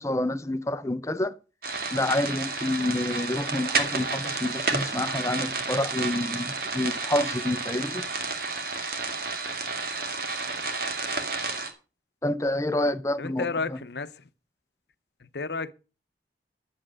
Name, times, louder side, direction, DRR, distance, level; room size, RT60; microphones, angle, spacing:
voice 1, 0.0-1.4 1.9-8.0 12.2-13.8, left 1 dB, 15° left, 0.7 m, -28 dB
sound 1, 1.6-11.7, right 4 dB, 55° right, 2.1 m, -31 dB
voice 2, 13.2-14.1 15.2-15.7, left 4 dB, 65° left, 0.8 m, -31 dB
11.0 x 7.6 x 6.4 m
head